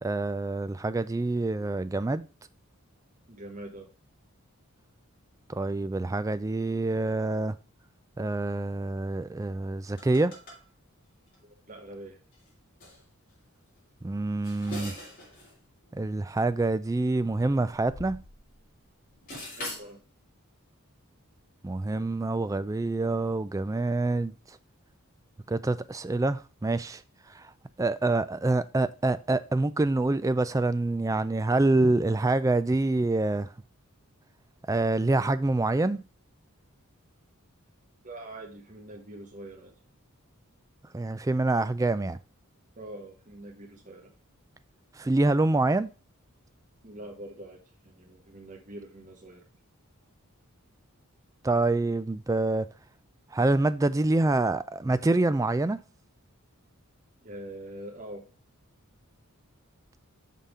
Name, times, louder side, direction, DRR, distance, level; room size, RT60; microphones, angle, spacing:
voice 1, 0.0-2.3 5.5-7.6 8.2-10.3 14.0-14.9 15.9-18.2 21.6-24.6 25.5-27.0 27.3-27.5 27.8-33.5 34.7-36.0 40.9-42.2 44.9-45.9 51.4-52.7 53.3-55.8, right 2 dB, 15° right, 0.3 m, -26 dB
voice 2, 3.3-3.9 11.4-12.2 19.6-20.0 38.0-39.7 42.8-44.1 46.8-49.4 57.2-58.3, right 1 dB, 35° right, 1.2 m, -44 dB
sound 1, 10.0-10.6 11.3-11.4 12.3-12.5 12.8-13.0 14.2-15.6 15.8-15.9 17.0-18.7 18.9-19.9, left 2 dB, 40° left, 3.4 m, -42 dB
5.8 x 5.5 x 4.9 m
head